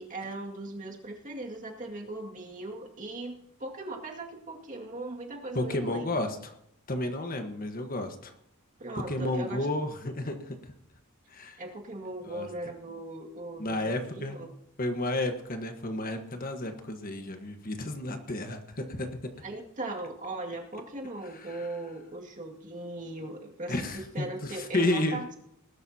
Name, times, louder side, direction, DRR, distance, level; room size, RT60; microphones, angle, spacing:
voice 1, 0.0-6.2 8.8-9.7 11.6-14.5 19.4-25.4, right 2 dB, 35° right, 0 dB, 2.2 m, -39 dB
voice 2, 5.5-6.5 6.9-8.3 8.9-10.7 11.3-11.6 12.3-12.5 13.6-14.4 14.8-19.3 21.5-21.7 23.7-25.2, left 1 dB, 40° left, 6 dB, 1.4 m, -32 dB
20.0 x 12.0 x 2.9 m, 0.76 s
head